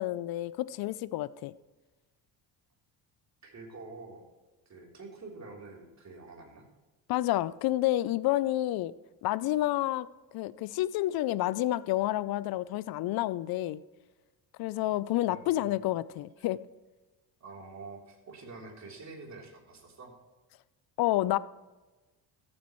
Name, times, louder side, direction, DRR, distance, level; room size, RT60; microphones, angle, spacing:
voice 1, 0.0-1.5 7.1-8.9 9.2-10.1 10.3-13.8 14.6-16.6 21.0-21.4, left 15 dB, 60° left, 0.5 m, -29 dB
voice 2, 3.4-4.3 4.7-6.7 15.3-15.8 16.2-16.3 17.4-20.1, right 3 dB, 40° right, 3.5 m, -47 dB
14.0 x 8.6 x 3.1 m
cardioid pair, 100°, 42 cm